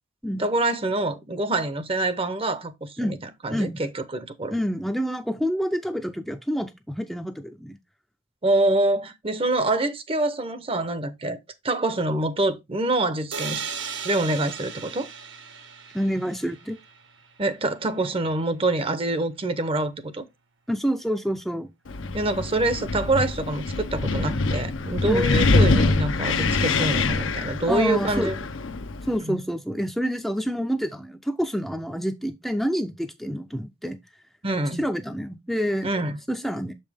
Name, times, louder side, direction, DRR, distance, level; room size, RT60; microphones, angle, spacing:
voice 1, 0.4-4.5 8.4-11.4 11.6-13.6 14.0-15.1 17.4-20.3 22.1-28.4 29.2-29.4 34.4-34.8 35.8-36.2, right 2 dB, 30° right, 0.7 m, -25 dB
voice 2, 3.5-3.8 4.5-7.8 15.9-16.8 20.7-21.7 25.0-25.2 27.7-28.3 29.1-34.0 34.8-35.9 36.3-36.7, equal, ahead, 0.5 m, -27 dB
sound 1, 13.3-17.1, right 6 dB, 65° right, 1.0 m, -36 dB
Wind, 21.9-29.2, left 3 dB, 80° left, 0.7 m, -24 dB
6.8 x 5.4 x 3.4 m
head